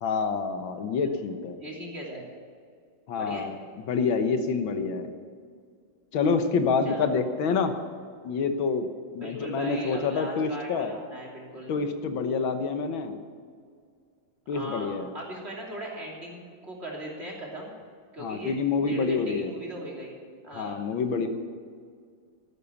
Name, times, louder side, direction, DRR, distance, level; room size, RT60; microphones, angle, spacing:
voice 1, 0.0-1.6 3.1-3.6 3.9-5.1 6.1-7.7 8.2-8.9 9.1-10.9 11.7-13.1 14.5-15.1 18.2-19.5 20.5-21.3, left 5 dB, 90° left, 7 dB, 1.9 m, -27 dB
voice 2, 1.6-2.3 3.2-3.5 6.8-7.3 9.2-11.8 14.5-17.7 18.1-18.5 18.9-20.1 20.4-20.8, equal, 30° right, -2 dB, 3.3 m, -38 dB
14.0 x 11.0 x 7.2 m, 2.1 s
omnidirectional pair, 2.1 m